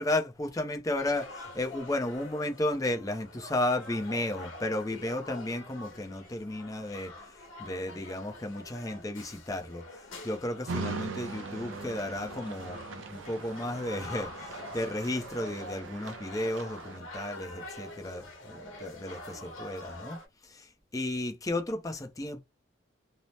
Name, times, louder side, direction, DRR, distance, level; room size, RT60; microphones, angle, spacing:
voice 1, 0.0-22.4, left 1 dB, 20° left, 0.5 m, -34 dB
sound 1, 1.0-20.3, left 2 dB, 90° left, 1.1 m, -46 dB
sound 2, 10.7-17.0, right 4 dB, 75° right, 0.5 m, -41 dB
2.7 x 2.0 x 3.1 m
head